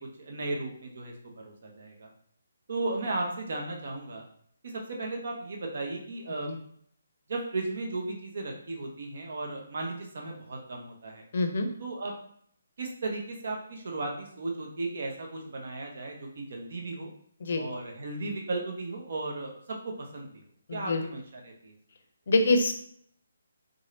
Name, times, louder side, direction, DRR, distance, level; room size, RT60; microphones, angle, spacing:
voice 1, 0.2-2.1 2.7-4.3 4.6-6.5 7.3-11.2 11.8-12.1 12.8-17.1 17.6-20.3 20.7-21.8, right 2 dB, 50° right, 1 dB, 0.9 m, -35 dB
voice 2, 11.3-11.7 17.4-17.6 20.7-21.0 22.3-22.7, left 2 dB, 50° left, 6 dB, 0.6 m, -25 dB
3.7 x 2.7 x 3.2 m, 0.64 s
hypercardioid pair, 170°, 0 cm